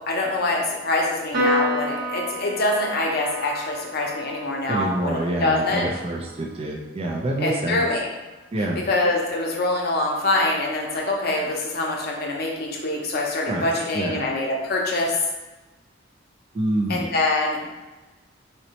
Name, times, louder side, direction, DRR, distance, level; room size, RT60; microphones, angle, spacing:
voice 1, 0.1-5.9 7.4-8.1 8.9-15.2 16.9-17.6, left 2 dB, 50° left, -1 dB, 0.6 m, -24 dB
Piano, 1.3-8.0, equal, 50° right, 0.9 m, -31 dB
voice 2, 4.7-7.8 8.5-8.8 13.5-13.6 13.9-14.2 16.5-17.1, right 1 dB, 30° right, -1 dB, 0.3 m, -26 dB
3.9 x 2.1 x 2.8 m, 1.1 s
head